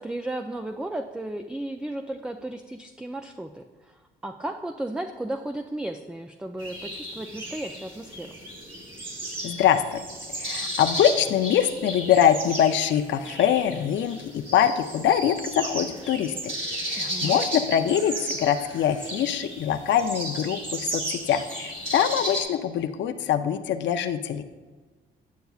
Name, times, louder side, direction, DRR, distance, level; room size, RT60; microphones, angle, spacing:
voice 1, 0.0-8.4 17.0-17.4, right 1 dB, 5° right, 5 dB, 0.3 m, -34 dB
sound 1, 6.6-22.4, right 1 dB, 25° right, 1.7 m, -34 dB
voice 2, 9.4-10.0 10.3-16.5 16.8-24.4, left 9 dB, 65° left, 7 dB, 0.5 m, -23 dB
9.2 x 6.7 x 2.4 m, 1.3 s
cardioid pair, 90°, 20 cm